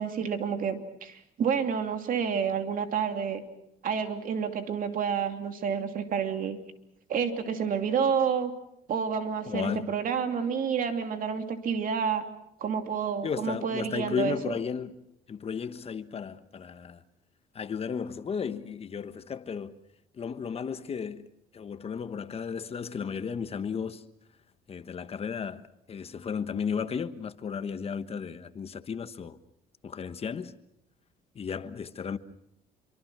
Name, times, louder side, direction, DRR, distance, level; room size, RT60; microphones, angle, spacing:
voice 1, 0.0-3.4 3.8-6.6 7.1-8.5 8.9-12.2 12.6-14.4, right 6 dB, 55° right, 2.7 m, -29 dB
voice 2, 9.5-9.9 13.2-15.0 15.3-17.0 17.5-19.7 20.1-24.0 24.7-29.4 29.8-30.5 31.3-32.2, left 6 dB, 35° left, 1.2 m, -34 dB
27.0 x 24.0 x 6.1 m
cardioid pair, 110°, 17 cm